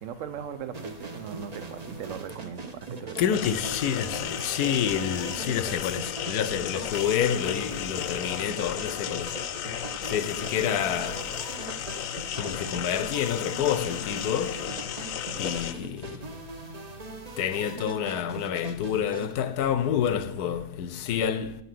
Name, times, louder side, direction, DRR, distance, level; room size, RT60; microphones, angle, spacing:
voice 1, 0.0-3.4 10.4-10.5, right 8 dB, 60° right, 1.0 m, -39 dB
sound 1, 0.7-19.3, right 3 dB, 35° right, 0.7 m, -41 dB
voice 2, 3.2-9.3 10.1-11.2 12.4-14.6 15.4-16.0 17.4-21.5, left 9 dB, 85° left, 1.2 m, -28 dB
sound 2, 3.3-15.7, left 9 dB, 65° left, 0.9 m, -34 dB
9.4 x 5.7 x 7.5 m
omnidirectional pair, 1.7 m